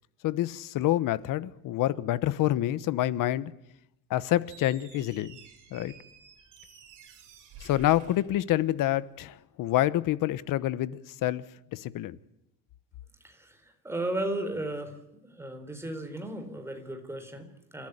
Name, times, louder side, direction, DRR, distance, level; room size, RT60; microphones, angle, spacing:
voice 1, 0.2-3.5 4.1-5.4 5.7-5.9 7.6-11.4 11.7-12.2, left 14 dB, 75° left, 1.2 m, -27 dB
Squeak, 4.4-9.0, right 4 dB, 65° right, 5.2 m, -51 dB
voice 2, 13.2-17.9, right 1 dB, 10° right, 3.9 m, -35 dB
29.0 x 13.5 x 10.0 m
cardioid pair, 150°, 33 cm